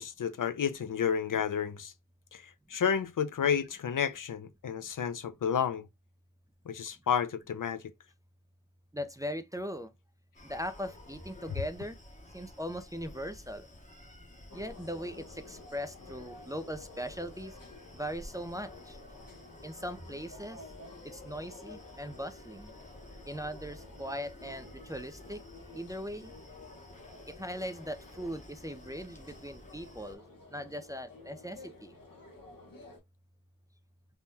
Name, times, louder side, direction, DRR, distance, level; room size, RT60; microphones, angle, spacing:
voice 1, 0.0-1.9 2.3-5.9 6.7-7.8 11.5-11.6, left 7 dB, 75° left, 0.5 m, -31 dB
voice 2, 8.9-9.9 10.4-12.0 12.3-13.6 14.5-17.5 17.9-19.0 19.6-20.6 21.0-22.7 23.3-25.4 25.7-26.3 27.3-30.2 30.5-31.9, equal, 10° right, 0.3 m, -39 dB
Screaming, 10.3-30.2, left 1 dB, 20° left, 0.7 m, -52 dB
sound 1, 14.5-33.0, left 3 dB, 90° left, 1.0 m, -52 dB
3.5 x 2.2 x 2.6 m
wide cardioid pair, 65°, 33 cm